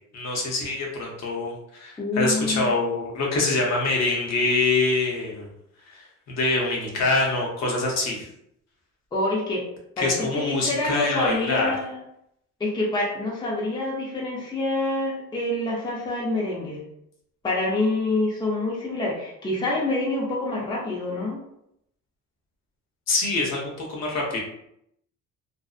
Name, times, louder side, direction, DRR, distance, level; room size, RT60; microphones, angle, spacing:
voice 1, 0.1-5.5 5.9-8.2 10.0-11.7 23.1-24.4, left 2 dB, 55° left, -2 dB, 0.8 m, -25 dB
voice 2, 2.0-2.7 9.1-9.6 10.0-12.0 12.6-16.8 17.4-21.4, left 2 dB, 15° left, -4 dB, 0.5 m, -26 dB
2.6 x 2.0 x 2.4 m, 0.77 s
cardioid pair, 120°, 31 cm